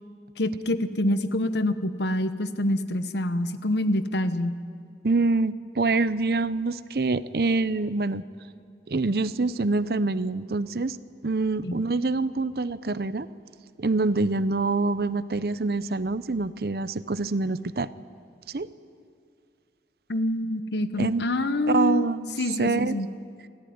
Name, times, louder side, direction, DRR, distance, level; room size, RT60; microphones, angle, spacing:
voice 1, 0.4-4.6 11.6-11.8 20.1-22.1 22.4-23.1, left 1 dB, 80° left, 12 dB, 1.0 m, -26 dB
voice 2, 5.0-8.2 8.9-11.0 11.2-13.3 13.8-17.9 18.5-18.7 21.0-21.2 21.7-23.0, right 3 dB, 60° right, 16 dB, 0.6 m, -25 dB
26.5 x 14.0 x 9.4 m, 2.3 s
head